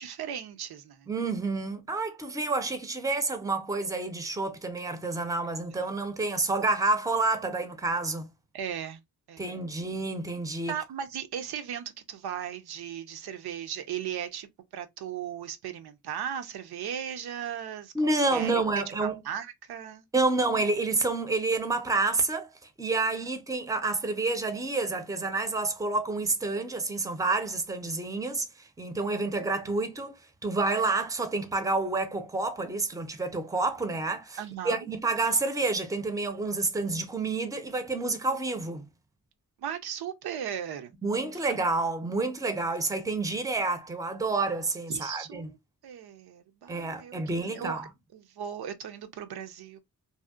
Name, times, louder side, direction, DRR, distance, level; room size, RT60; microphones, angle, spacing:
voice 1, 0.0-1.1 8.5-9.0 9.3-9.5 10.7-17.9 18.3-18.6 19.0-20.0 23.1-23.2 29.0-29.1 34.4-34.9 39.6-40.9 41.4-41.5 44.9-45.6 45.8-47.2 47.4-47.8 48.1-49.8, right 9 dB, 85° right, 0.5 m, -37 dB
voice 2, 1.1-8.3 9.4-10.7 17.9-19.2 20.1-22.5 22.8-30.2 30.4-34.4 34.6-38.8 41.0-45.5 46.7-47.9, right 3 dB, 10° right, 0.5 m, -29 dB
2.7 x 2.0 x 2.3 m
cardioid pair, 70°, 37 cm